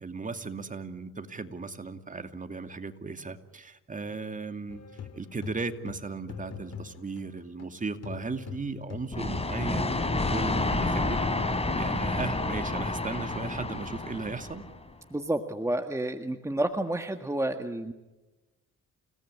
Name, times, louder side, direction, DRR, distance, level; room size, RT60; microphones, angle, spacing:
voice 1, 0.0-4.8 5.1-9.9 10.3-11.2 11.8-14.6, right 3 dB, 25° right, 7 dB, 2.5 m, -36 dB
sound 1, 4.7-7.7 8.0-9.6, left 7 dB, 55° left, 2.5 m, -43 dB
sound 2, 9.1-14.8, left 2 dB, 20° left, 3.7 m, -29 dB
voice 2, 15.1-17.9, right 1 dB, 10° right, 6 dB, 1.7 m, -30 dB
29.5 x 18.5 x 9.8 m, 1.1 s
cardioid pair, 90°, 30 cm